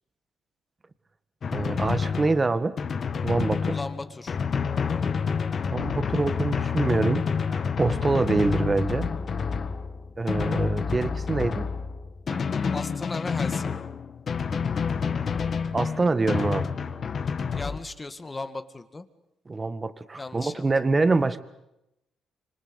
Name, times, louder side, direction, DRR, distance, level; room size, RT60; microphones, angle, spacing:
Drum, 1.4-17.8, left 6 dB, 45° left, 1.8 m, -28 dB
voice 1, 1.5-2.8 3.2-3.8 5.7-9.1 10.2-11.6 12.3-12.4 15.7-16.7 19.5-21.4, right 3 dB, 25° right, 12 dB, 1.7 m, -25 dB
voice 2, 3.7-4.4 12.7-13.7 17.6-19.1 20.2-20.6, left 3 dB, 25° left, 10 dB, 2.0 m, -36 dB
26.5 x 25.5 x 8.3 m, 0.88 s
cardioid pair, 90°, 0 cm